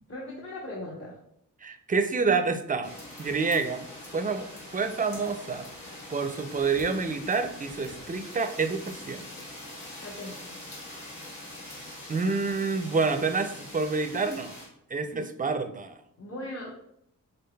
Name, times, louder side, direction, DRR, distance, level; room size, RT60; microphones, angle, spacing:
voice 1, 0.1-1.2 10.0-10.4 16.2-16.7, left 1 dB, 45° left, -3 dB, 0.9 m, -38 dB
voice 2, 1.6-3.8 4.1-4.5 4.7-5.7 6.1-9.2 12.1-14.5 14.9-16.0, right 4 dB, 25° right, 9 dB, 0.4 m, -28 dB
sound 1, 2.8-14.7, left 1 dB, 80° left, 1.6 m, -43 dB
5.4 x 3.7 x 2.2 m, 0.73 s
wide cardioid pair, 95°, 33 cm